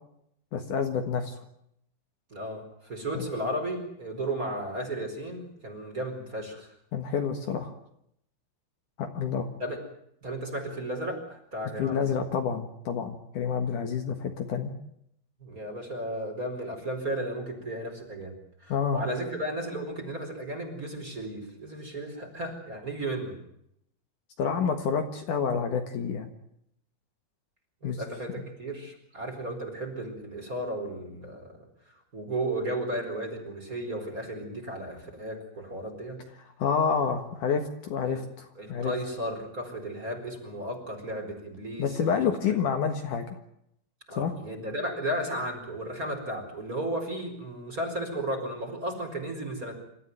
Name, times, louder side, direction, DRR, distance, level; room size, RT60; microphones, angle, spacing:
voice 1, 0.5-1.3 3.1-3.3 6.9-7.7 9.0-9.5 11.8-14.7 18.7-19.0 24.4-26.3 27.8-28.0 28.3-28.4 36.6-38.9 41.8-43.4 44.1-44.3, left 6 dB, 65° left, 6 dB, 2.9 m, -28 dB
voice 2, 2.3-6.7 9.6-9.8 10.2-12.2 15.4-18.4 18.6-23.4 27.8-31.4 32.1-36.2 38.1-38.2 38.6-42.1 42.4-42.5 44.1-49.7, right 1 dB, 20° right, 3 dB, 4.8 m, -34 dB
27.5 x 13.5 x 9.4 m, 0.76 s
omnidirectional pair, 4.3 m